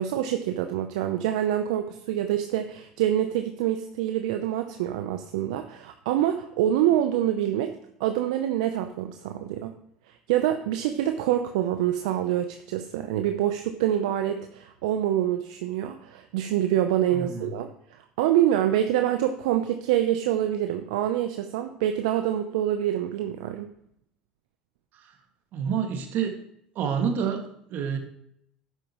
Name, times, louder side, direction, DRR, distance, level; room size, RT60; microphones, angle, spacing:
voice 1, 0.0-7.7 8.0-9.8 10.1-23.7, right 11 dB, 75° right, 7 dB, 0.7 m, -26 dB
voice 2, 17.1-17.5 24.9-25.2 25.5-26.4 26.8-28.0, right 7 dB, 55° right, 4 dB, 2.0 m, -28 dB
11.5 x 9.1 x 3.1 m, 0.70 s
hypercardioid pair, 75°, 4 cm